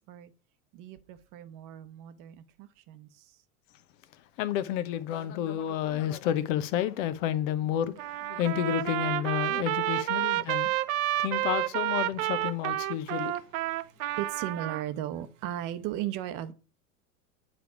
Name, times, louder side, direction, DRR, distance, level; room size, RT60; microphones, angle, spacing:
voice 1, 0.7-3.3 13.7-16.5, right 12 dB, 45° right, 1.0 m, -37 dB
voice 2, 4.4-10.7 11.2-13.3, left 11 dB, 60° left, 0.9 m, -30 dB
Trumpet, 8.0-14.8, right 15 dB, 65° right, 0.6 m, -30 dB
9.9 x 3.5 x 5.0 m
hypercardioid pair, 80°, 44 cm